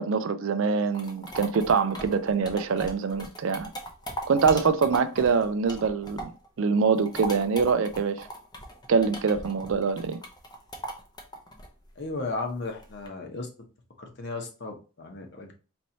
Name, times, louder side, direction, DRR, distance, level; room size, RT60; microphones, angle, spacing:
voice 1, 0.0-3.7 4.3-6.3 6.6-8.2 8.9-10.2, right 5 dB, 60° right, 0.4 m, -24 dB
sound 1, 0.6-6.5 6.8-13.1, equal, 20° left, 0.6 m, -39 dB
voice 2, 12.0-13.5 14.0-15.5, left 3 dB, 50° left, 0.9 m, -35 dB
4.3 x 3.0 x 2.7 m
head